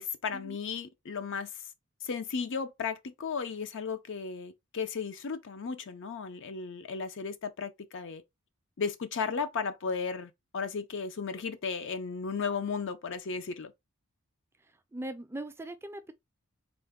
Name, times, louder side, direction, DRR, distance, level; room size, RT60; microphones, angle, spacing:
voice 1, 0.0-1.5 2.0-8.2 8.8-13.7, left 5 dB, 60° left, 0.6 m, -35 dB
voice 2, 14.9-16.1, right 1 dB, 10° right, 0.4 m, -40 dB
3.7 x 2.2 x 3.5 m
head